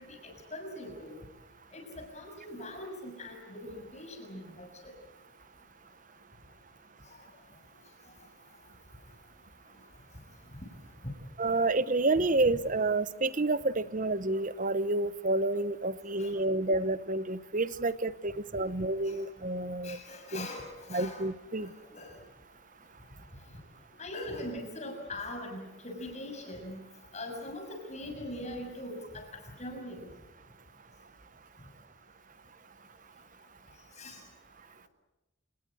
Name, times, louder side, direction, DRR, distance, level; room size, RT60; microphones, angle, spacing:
voice 1, 0.5-1.2 1.7-4.9 12.2-12.3 16.2-16.3 19.8-21.2 21.6-22.1 24.0-26.8 27.1-29.3 29.6-30.0 34.0-34.2, left 1 dB, 35° left, 3 dB, 6.7 m, -41 dB
voice 2, 11.4-20.0 20.3-20.5 20.9-21.7, right 2 dB, 40° right, 15 dB, 0.9 m, -29 dB
28.5 x 19.0 x 7.8 m, 1.0 s
head